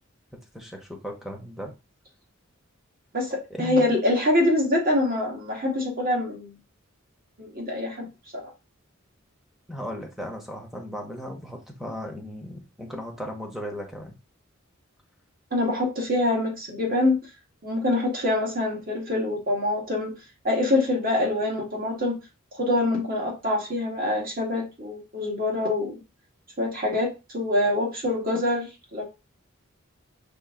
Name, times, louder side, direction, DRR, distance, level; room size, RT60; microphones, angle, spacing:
voice 1, 0.5-1.7 3.6-3.9 9.7-14.2, equal, ahead, 2 dB, 0.9 m, -36 dB
voice 2, 3.1-6.6 7.4-8.1 15.5-17.2 17.6-20.1 20.4-22.2 22.6-26.0 26.6-29.0, left 1 dB, 45° right, -1 dB, 1.7 m, -25 dB
5.5 x 2.6 x 3.8 m, 0.26 s
head